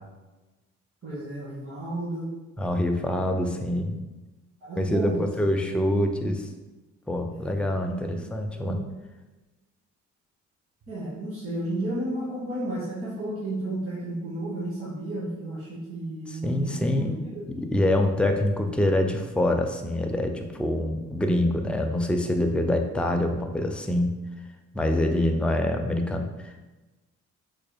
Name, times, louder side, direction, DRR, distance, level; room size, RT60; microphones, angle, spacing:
voice 1, 1.0-2.3 3.1-3.3 4.6-5.5 7.3-8.3 8.5-8.9 10.9-17.4, right 1 dB, 50° right, -8 dB, 1.5 m, -33 dB
voice 2, 2.6-4.0 4.8-6.5 7.1-8.8 16.3-17.2 17.5-24.1 24.7-26.7, left 1 dB, 5° left, 4 dB, 0.3 m, -25 dB
4.4 x 2.1 x 3.4 m, 1.1 s
cardioid pair, 90°, 30 cm